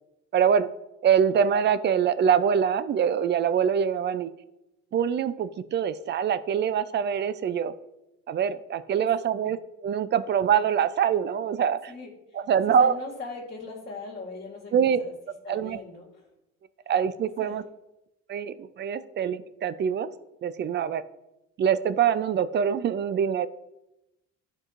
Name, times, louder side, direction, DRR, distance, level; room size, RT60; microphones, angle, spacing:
voice 1, 0.3-0.7 1.0-4.3 4.9-7.7 8.3-9.6 9.8-11.9 12.5-12.9 14.7-15.0 15.5-15.8 16.9-17.6 18.3-20.1 20.4-21.0 21.6-23.5, right 8 dB, 40° right, 14 dB, 0.4 m, -24 dB
voice 2, 11.9-12.4 12.7-15.1 15.4-16.3 16.8-16.9 17.4-17.5, left 3 dB, 35° left, -5 dB, 2.0 m, -40 dB
10.5 x 4.6 x 2.5 m, 0.92 s
cardioid pair, 100°, 29 cm